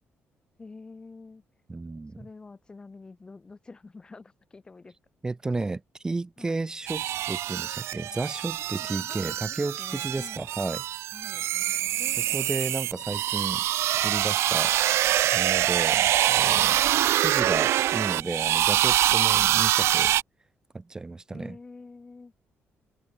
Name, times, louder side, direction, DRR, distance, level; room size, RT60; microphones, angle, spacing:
voice 1, 0.6-1.4 2.2-5.0 6.4-6.6 8.6-10.5 11.1-11.5 12.0-12.7 16.6-16.9 19.2-19.5 21.3-22.3, left 3 dB, 20° left, 3.5 m, -47 dB
voice 2, 1.7-2.2 5.2-10.8 12.3-13.7 14.0-14.8 15.3-20.1 20.7-21.6, right 3 dB, 15° right, 3.1 m, -33 dB
sound 1, 6.9-20.2, right 13 dB, 80° right, 0.7 m, -25 dB
cardioid pair, 165°, 5 cm